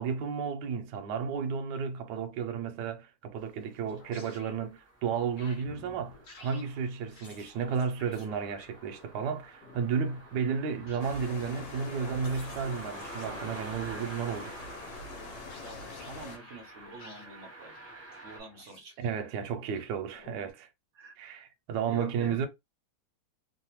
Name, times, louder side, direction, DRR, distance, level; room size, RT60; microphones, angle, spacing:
voice 1, 0.0-14.5 19.0-20.7 21.2-22.5, right 6 dB, 75° right, 1.2 m, -33 dB
sound 1, 3.7-18.4, right 2 dB, 15° right, 0.6 m, -48 dB
sound 2, 3.9-4.7 5.4-14.4 15.0-17.4 17.6-19.1 19.7-20.5, left 3 dB, 50° left, 1.1 m, -53 dB
sound 3, 11.0-16.4, left 3 dB, 75° left, 1.4 m, -44 dB
voice 2, 15.6-17.8 18.2-19.1 20.9-21.2 21.9-22.4, right 1 dB, 60° right, 0.8 m, -46 dB
3.2 x 2.1 x 2.9 m
omnidirectional pair, 2.1 m